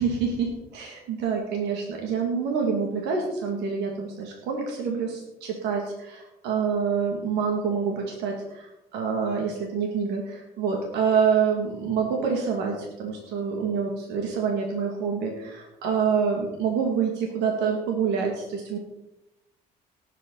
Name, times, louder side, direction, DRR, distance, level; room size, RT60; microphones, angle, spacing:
voice 1, 0.0-18.8, right 6 dB, 90° right, 1 dB, 2.2 m, -27 dB
18.5 x 8.3 x 4.0 m, 0.93 s
cardioid pair, 110°, 17 cm